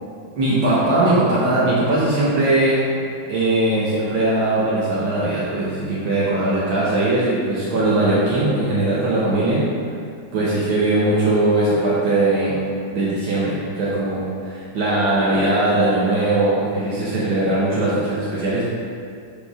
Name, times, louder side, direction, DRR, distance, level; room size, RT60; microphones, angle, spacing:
voice 1, 0.4-3.0 3.3-9.7 10.3-12.6 12.9-18.6, right 2 dB, 85° right, -8 dB, 1.9 m, -20 dB
5.5 x 4.2 x 6.1 m, 2.3 s
omnidirectional pair, 2.1 m